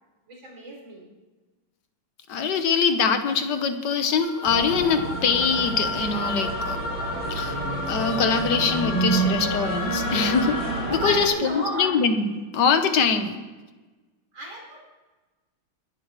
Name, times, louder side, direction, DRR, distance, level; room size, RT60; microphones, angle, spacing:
voice 1, 0.3-1.1 10.8-12.0 14.3-14.8, right 1 dB, 65° right, -2 dB, 5.2 m, -32 dB
voice 2, 2.3-6.8 7.3-7.6 7.9-10.6 10.9-13.4, left 5 dB, 60° left, 8 dB, 1.6 m, -23 dB
sound 1, 4.2-11.5, left 3 dB, 80° left, 4.2 m, -32 dB
sound 2, 4.4-11.3, right 3 dB, 35° right, 3.4 m, -30 dB
22.0 x 11.5 x 3.2 m, 1.2 s
omnidirectional pair, 2.2 m